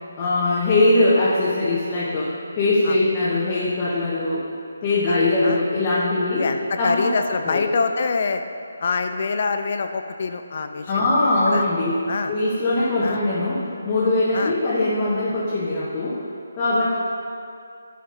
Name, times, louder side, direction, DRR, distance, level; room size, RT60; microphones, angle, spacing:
voice 1, 0.2-4.4 4.8-6.4 6.8-7.1 7.4-7.6 10.9-11.9 12.3-16.2 16.5-16.9, left 2 dB, 25° left, -8 dB, 1.1 m, -21 dB
voice 2, 5.1-5.6 6.3-8.4 8.8-11.1 11.5-11.6 12.1-12.3 13.0-13.2 14.3-14.5, left 4 dB, 50° left, 7 dB, 0.4 m, -25 dB
11.0 x 5.0 x 4.0 m, 2.5 s
figure-of-eight pair, 150°, 0 cm